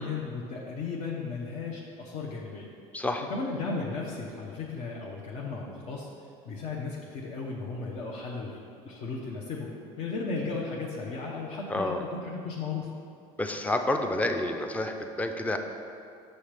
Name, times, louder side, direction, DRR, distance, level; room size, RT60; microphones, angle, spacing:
voice 1, 0.0-2.7 3.3-6.1 6.4-8.6 8.8-12.9, left 4 dB, 60° left, -3 dB, 0.8 m, -35 dB
voice 2, 2.9-3.3 11.7-12.0 13.4-15.6, left 1 dB, 10° left, 5 dB, 0.5 m, -29 dB
6.4 x 5.6 x 3.4 m, 2.4 s
supercardioid pair, 110°, 13 cm